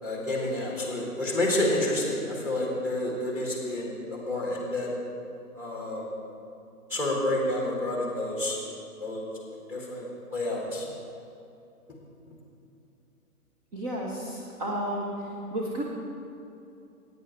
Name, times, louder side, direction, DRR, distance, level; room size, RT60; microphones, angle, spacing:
voice 1, 0.0-4.9 5.5-6.0 6.9-8.6 9.0-9.3 9.7-10.9, left 1 dB, 5° right, -3 dB, 1.7 m, -29 dB
voice 2, 13.7-15.1 15.5-15.8, right 1 dB, 25° right, -3 dB, 0.9 m, -32 dB
16.5 x 9.6 x 3.2 m, 2.7 s
figure-of-eight pair, 135°, 46 cm